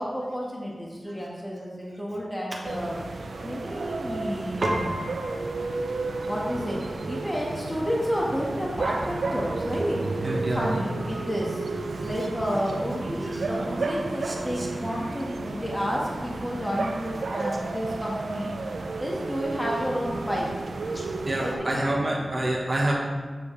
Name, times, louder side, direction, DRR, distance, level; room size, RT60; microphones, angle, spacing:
voice 1, 0.0-2.9 3.4-5.1 6.2-6.8 7.1-10.1 10.5-11.6 12.0-18.5 19.0-20.5 20.9-21.0 21.4-21.7, equal, 10° left, -4 dB, 1.7 m, -30 dB
sound 1, 2.6-21.5, right 3 dB, 80° right, 0.5 m, -32 dB
Piano, 4.6-14.2, right 1 dB, 60° right, 1.1 m, -38 dB
voice 2, 10.2-10.7 12.5-12.6 13.3-13.7 14.2-14.7 17.4-17.5 18.7-18.9 21.3-22.9, right 1 dB, 35° right, -2 dB, 1.2 m, -28 dB
7.4 x 6.8 x 3.3 m, 1.5 s
cardioid pair, 45°, 0 cm